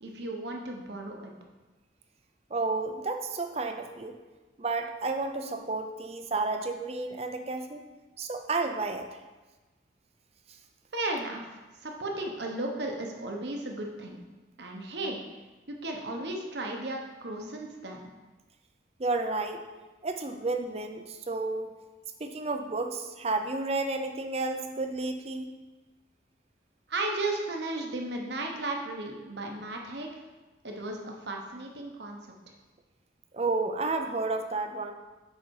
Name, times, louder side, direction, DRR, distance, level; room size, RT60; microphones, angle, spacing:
voice 1, 0.0-1.3 10.9-11.4 11.8-14.2 14.6-15.2 15.7-18.1 26.9-30.2 30.6-32.2, right 2 dB, 65° right, 1 dB, 1.1 m, -35 dB
voice 2, 2.5-4.1 4.6-7.9 8.2-9.1 19.0-19.6 20.0-21.7 22.2-25.5 33.3-34.9, right 3 dB, 35° right, 5 dB, 0.5 m, -31 dB
6.5 x 5.0 x 4.8 m, 1.2 s
head